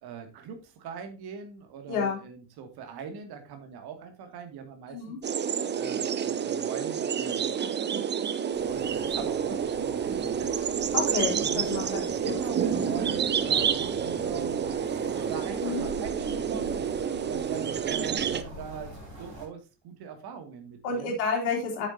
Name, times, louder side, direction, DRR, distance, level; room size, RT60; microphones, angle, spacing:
voice 1, 0.0-5.2 5.7-7.9 8.7-10.5 11.4-14.6 15.1-16.8 17.2-18.9 19.2-21.1, right 6 dB, 50° right, 5 dB, 2.3 m, -41 dB
voice 2, 1.9-2.2 4.9-5.2 10.9-12.3 12.8-12.9 15.6-15.9 20.8-21.9, left 5 dB, 65° left, 0 dB, 3.3 m, -30 dB
sound 1, 5.2-18.4, right 7 dB, 20° right, 0.7 m, -29 dB
sound 2, 8.5-19.5, right 1 dB, 80° right, 5.3 m, -44 dB
9.6 x 8.9 x 2.7 m, 0.30 s
figure-of-eight pair, 55°, 49 cm